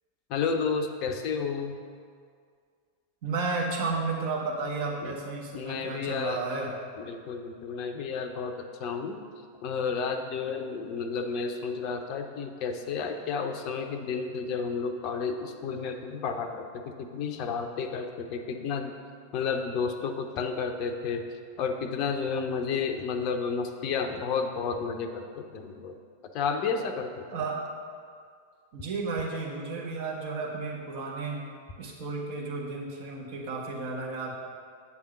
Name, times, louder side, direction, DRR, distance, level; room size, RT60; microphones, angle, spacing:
voice 1, 0.3-1.8 5.0-5.2 5.5-6.4 7.0-8.5 8.8-9.2 9.6-18.9 19.3-21.2 21.6-25.9 26.3-27.2, left 5 dB, 40° left, 6 dB, 0.6 m, -31 dB
voice 2, 3.2-6.7 27.3-27.6 28.7-31.4 31.8-34.3, right 3 dB, 50° right, -2 dB, 1.4 m, -32 dB
8.1 x 3.6 x 6.3 m, 2.1 s
figure-of-eight pair, 90°, 0 cm